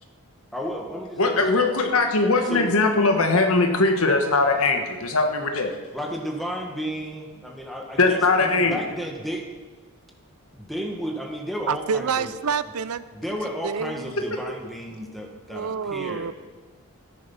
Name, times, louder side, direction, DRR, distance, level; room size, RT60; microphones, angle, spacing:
voice 1, 0.5-1.7 2.5-2.7 5.9-9.4 10.5-12.3 13.1-16.3, equal, ahead, 0 dB, 1.6 m, -33 dB
voice 2, 1.2-5.8 8.0-8.8 14.2-14.3, left 3 dB, 70° left, 5 dB, 1.4 m, -20 dB
voice 3, 11.7-13.0 13.6-14.2 15.5-16.3, right 6 dB, 80° right, 15 dB, 0.6 m, -27 dB
13.5 x 10.0 x 5.6 m, 1.4 s
head